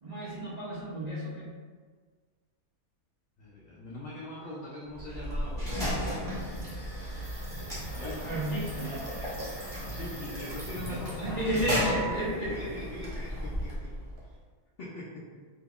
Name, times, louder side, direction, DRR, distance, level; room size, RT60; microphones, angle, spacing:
voice 1, 0.0-1.5 8.2-9.1 11.2-12.5, right 1 dB, 80° right, -8 dB, 0.3 m, -32 dB
voice 2, 3.4-6.3 7.9-8.3 9.8-11.5 11.9-13.9 14.2-14.4 14.8-15.4, left 1 dB, 80° left, -5 dB, 0.5 m, -42 dB
sound 1, 4.9-14.2, equal, 25° right, 0.8 m, -35 dB
sound 2, 7.9-13.7, equal, 30° left, 0.8 m, -48 dB
2.9 x 2.3 x 3.5 m, 1.5 s
omnidirectional pair, 1.6 m